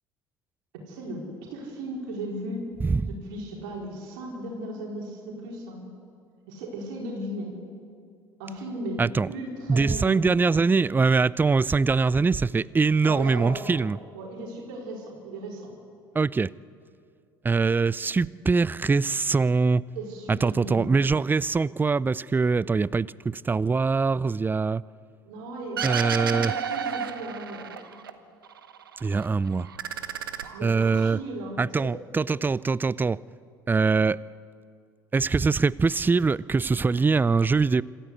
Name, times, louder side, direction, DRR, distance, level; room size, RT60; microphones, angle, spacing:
voice 1, 0.9-1.2 1.5-2.6 3.1-5.8 6.5-7.5 8.4-9.0 9.3-10.2 13.0-15.7 19.9-21.0 25.2-27.7 30.5-31.9, right 1 dB, 75° right, -2 dB, 4.5 m, -36 dB
voice 2, 9.7-14.0 16.1-16.5 17.4-19.8 20.3-24.8 25.8-26.5 29.0-29.7 30.6-31.2 31.6-33.2 33.7-34.2 35.1-37.8, right 4 dB, 15° right, 22 dB, 0.5 m, -23 dB
sound 1, 25.8-28.1 28.4-29.3 29.6-31.1, right 7 dB, 90° right, 1.0 m, -32 dB
26.0 x 14.5 x 8.3 m, 2.4 s
hypercardioid pair, 60°, 11 cm